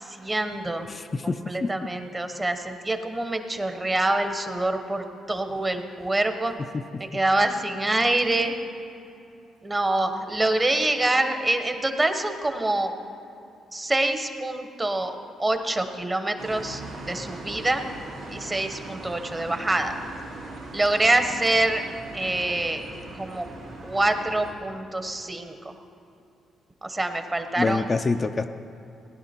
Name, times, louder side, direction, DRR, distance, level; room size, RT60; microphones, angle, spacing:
voice 1, 0.0-0.9 1.2-6.5 7.0-8.6 9.6-12.9 13.7-16.8 17.1-17.8 18.3-20.0 20.7-21.8 22.1-22.8 23.2-23.4 23.8-25.7 26.8-27.9, right 2 dB, 20° right, 7 dB, 1.1 m, -25 dB
voice 2, 0.9-1.7 6.7-7.0 27.6-28.4, left 3 dB, 30° left, 6 dB, 0.4 m, -26 dB
sound 1, 16.4-24.5, right 2 dB, 90° right, 3.2 m, -40 dB
17.5 x 10.5 x 4.4 m, 2.7 s
cardioid pair, 90°, 0 cm